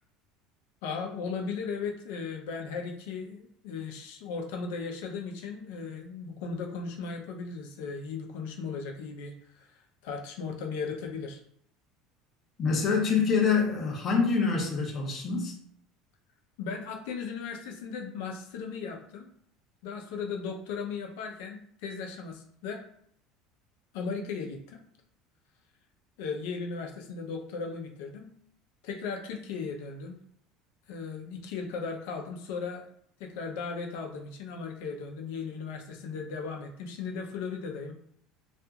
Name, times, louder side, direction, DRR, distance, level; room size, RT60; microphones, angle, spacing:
voice 1, 0.8-9.7 10.0-11.4 16.6-19.3 19.8-22.8 23.9-24.8 26.2-28.3 28.8-30.2 30.9-32.8 33.2-37.9, left 5 dB, 75° left, 2 dB, 0.5 m, -36 dB
voice 2, 12.6-15.5, left 5 dB, 25° left, -1 dB, 0.5 m, -26 dB
2.8 x 2.4 x 2.3 m, 0.64 s
cardioid pair, 180°, 0 cm